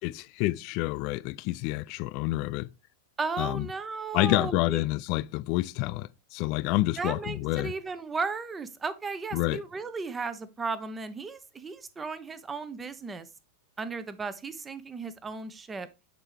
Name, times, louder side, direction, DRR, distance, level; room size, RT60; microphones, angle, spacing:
voice 1, 0.0-2.7 3.4-3.7 4.1-7.7 9.3-9.6, left 18 dB, 45° left, 0.3 m, -28 dB
voice 2, 3.2-4.8 7.0-13.3 13.8-15.9, right 4 dB, 15° right, 0.7 m, -35 dB
8.1 x 4.4 x 3.4 m
figure-of-eight pair, 90°, 0 cm